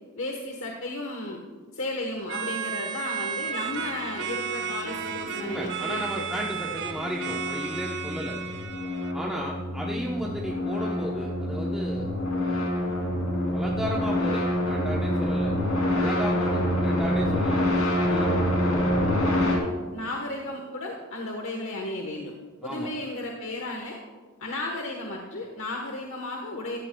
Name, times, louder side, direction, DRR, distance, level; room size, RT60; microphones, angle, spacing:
voice 1, 0.2-1.4 1.7-6.2 19.9-22.3 22.6-24.0 24.4-26.8, left 2 dB, 65° left, 1 dB, 1.2 m, -34 dB
sound 1, 2.3-9.1, right 7 dB, 55° right, 0.9 m, -33 dB
sound 2, 5.0-19.6, left 1 dB, 85° left, 3.3 m, -27 dB
voice 2, 5.4-8.4 9.1-12.9 13.5-15.5 15.9-17.7 18.0-18.8 22.6-22.9, equal, 5° right, -4 dB, 0.9 m, -34 dB
15.5 x 13.5 x 2.3 m, 1.5 s
head